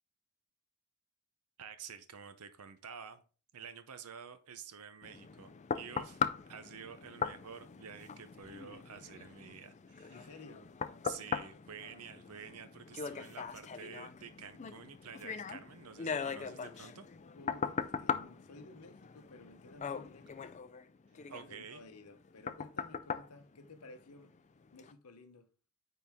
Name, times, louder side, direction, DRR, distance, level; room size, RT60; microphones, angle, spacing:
voice 1, 1.6-3.2 3.5-10.4 11.0-17.1 21.3-21.8, right 7 dB, 75° right, 0.6 m, -50 dB
sound 1, 5.0-24.3 24.8-24.9, left 6 dB, 30° left, 0.4 m, -40 dB
voice 2, 10.1-10.7 17.3-20.5 21.1-24.4 24.7-25.5, left 2 dB, 85° left, 0.9 m, -55 dB
9.3 x 3.9 x 3.5 m
head